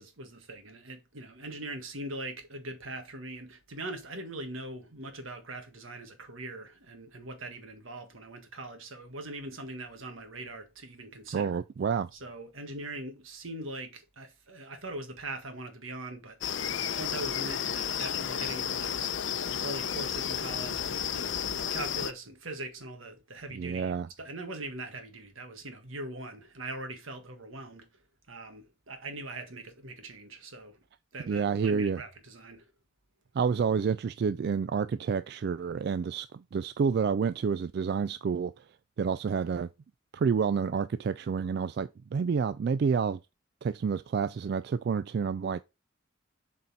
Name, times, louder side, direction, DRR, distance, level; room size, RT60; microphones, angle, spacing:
voice 1, 0.0-11.6 12.1-19.2 19.6-28.0 28.3-30.8 31.1-32.7, right 2 dB, 85° right, 1.5 m, -41 dB
voice 2, 11.3-12.1 23.5-24.1 31.3-32.0 33.3-38.5 39.0-39.7 40.1-43.2 43.6-45.6, right 6 dB, 55° right, 0.3 m, -29 dB
sound 1, 16.4-22.1, left 8 dB, 65° left, 0.6 m, -32 dB
7.5 x 4.1 x 4.1 m
head